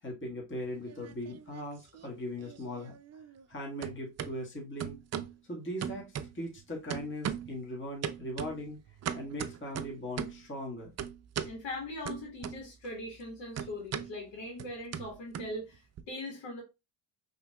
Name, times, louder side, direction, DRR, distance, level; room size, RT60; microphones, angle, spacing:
voice 1, 0.0-2.9 3.5-5.0 5.5-8.8 9.1-10.9, equal, 25° left, 1.7 m, -39 dB
sound 1, 0.7-1.6 1.9-3.5 3.8-4.3 4.8-5.4 5.8-6.6 6.9-7.6 8.0-10.5 11.0-11.6 12.1-12.9 13.1-16.0, right 8 dB, 40° right, 0.5 m, -39 dB
voice 2, 11.4-16.6, left 1 dB, 80° left, 1.8 m, -41 dB
5.5 x 3.1 x 2.3 m
supercardioid pair, 80°, 43 cm